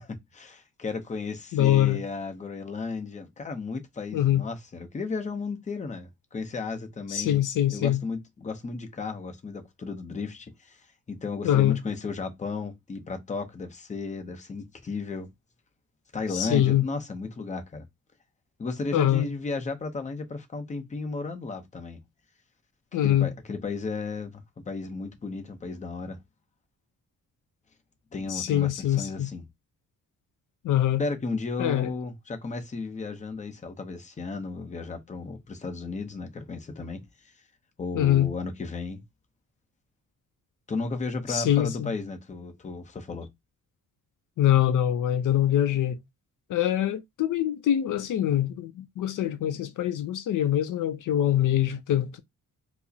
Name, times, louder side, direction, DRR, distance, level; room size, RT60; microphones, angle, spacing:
voice 1, 0.0-7.4 7.7-10.8 11.1-15.3 16.1-17.9 18.6-22.0 23.0-26.2 28.1-29.4 31.0-37.0 37.8-39.0 40.7-43.3, left 4 dB, 20° left, 0.7 m, -34 dB
voice 2, 1.5-2.0 4.1-4.5 7.1-8.0 11.4-11.8 16.3-16.9 18.9-19.3 22.9-23.3 28.3-29.3 30.6-31.0 31.6-31.9 37.9-38.3 41.3-41.9 44.4-46.0 46.5-52.2, left 11 dB, 70° left, 0.5 m, -24 dB
4.5 x 2.1 x 2.7 m
cardioid pair, 125°, 32 cm